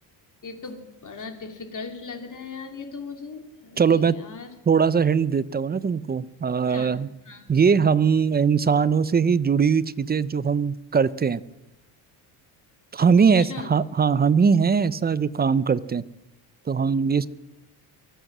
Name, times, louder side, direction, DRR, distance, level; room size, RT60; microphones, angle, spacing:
voice 1, 0.4-4.5 6.7-6.9 7.2-7.4 13.3-13.7, left 4 dB, 35° left, 4 dB, 2.9 m, -38 dB
voice 2, 3.8-4.1 4.7-7.1 7.5-11.4 12.9-16.0 16.7-17.3, right 6 dB, 20° right, 17 dB, 0.5 m, -21 dB
23.5 x 8.0 x 6.1 m, 0.97 s
cardioid pair, 90°, 49 cm